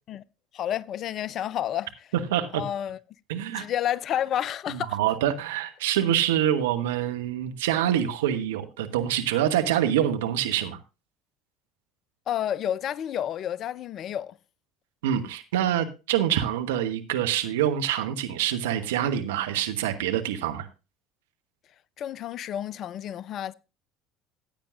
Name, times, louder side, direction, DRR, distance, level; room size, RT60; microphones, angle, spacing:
voice 1, 0.5-1.9 2.5-3.0 3.5-5.0 12.3-14.3 22.0-23.5, left 10 dB, 50° left, 0.5 m, -30 dB
voice 2, 2.3-2.6 3.3-3.7 4.7-10.8 15.0-20.7, right 11 dB, 75° right, 1.2 m, -26 dB
15.5 x 8.9 x 2.5 m
figure-of-eight pair, 65°, 0 cm